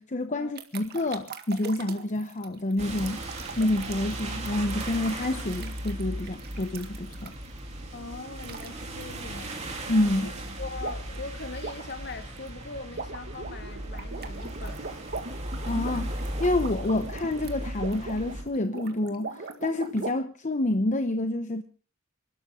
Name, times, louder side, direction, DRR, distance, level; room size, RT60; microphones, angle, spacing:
voice 1, 0.0-7.3 9.9-10.3 15.6-21.6, left 1 dB, 35° left, 0.9 m, -28 dB
sound 1, 0.6-7.6 8.4-8.7 9.0-9.2 10.8-11.2 11.5-20.1, right 3 dB, 50° right, 1.9 m, -40 dB
sound 2, 2.8-18.4, right 1 dB, 30° right, 3.6 m, -37 dB
voice 2, 7.9-9.6 10.2-10.3 10.6-15.0, left 3 dB, 55° left, 2.2 m, -41 dB
27.5 x 12.5 x 3.8 m
head